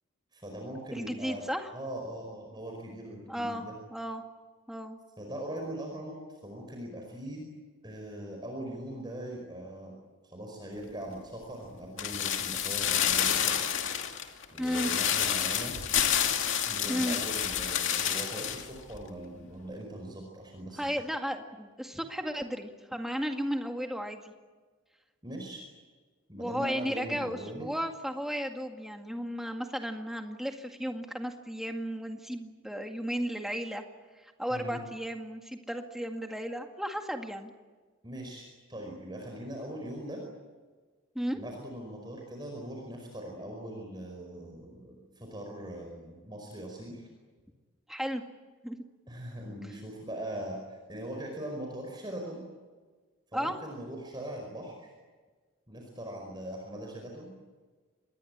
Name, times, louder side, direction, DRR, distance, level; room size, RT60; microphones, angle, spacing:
voice 1, 0.3-3.7 5.2-7.5 7.8-9.9 10.2-13.6 14.5-15.8 16.6-20.9 25.2-25.6 26.3-27.7 34.5-34.8 38.0-40.2 41.3-47.1 49.1-52.4 53.3-54.9 55.7-57.3, right 1 dB, 20° right, 1 dB, 5.1 m, -41 dB
voice 2, 0.9-1.7 3.3-3.6 3.9-4.2 4.7-5.0 14.6-14.9 16.9-17.2 20.8-24.3 26.4-33.8 34.2-37.5 41.2-41.4 47.9-48.2 48.6-48.8 53.3-53.6, equal, ahead, 3 dB, 2.0 m, -34 dB
sound 1, 12.0-18.7 18.9-19.0, left 9 dB, 60° left, 2.5 m, -29 dB
26.5 x 21.0 x 8.7 m, 1.4 s
head